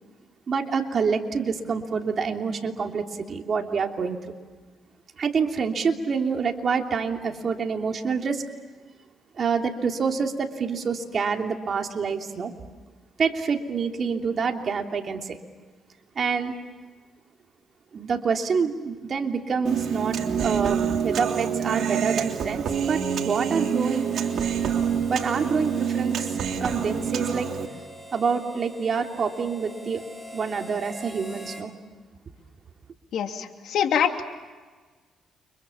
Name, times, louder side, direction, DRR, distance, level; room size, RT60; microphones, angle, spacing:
voice 1, 0.5-4.3 5.2-8.4 9.3-12.5 13.2-15.4 16.1-16.5 17.9-24.2 25.1-27.5 28.1-30.0 30.3-31.7, right 5 dB, 50° right, 3 dB, 3.1 m, -27 dB
Human voice, 19.7-27.7, right 7 dB, 65° right, 3.4 m, -27 dB
Harmonica, 22.6-31.7, equal, ahead, 4.7 m, -44 dB
voice 2, 33.1-34.2, left 8 dB, 75° left, 5 dB, 2.8 m, -24 dB
30.0 x 26.0 x 7.2 m, 1.4 s
cardioid pair, 90°, 0 cm